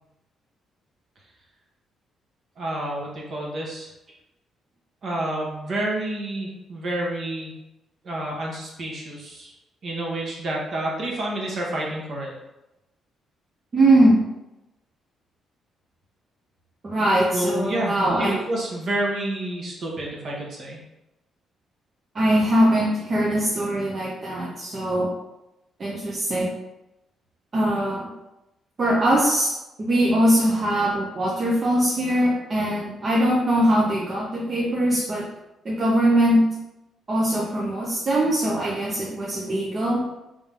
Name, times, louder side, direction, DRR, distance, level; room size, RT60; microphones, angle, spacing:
voice 1, 2.6-3.9 5.0-7.5 8.0-9.5 9.8-12.3 17.3-20.8, right 1 dB, 55° right, -2 dB, 1.4 m, -29 dB
voice 2, 13.7-14.2 16.8-18.5 22.1-25.1 25.8-26.5 27.5-28.1 28.8-35.3 35.6-36.5 37.1-40.1, right 1 dB, 40° right, -4 dB, 0.8 m, -21 dB
3.9 x 3.6 x 3.6 m, 0.95 s
cardioid pair, 90°, 0 cm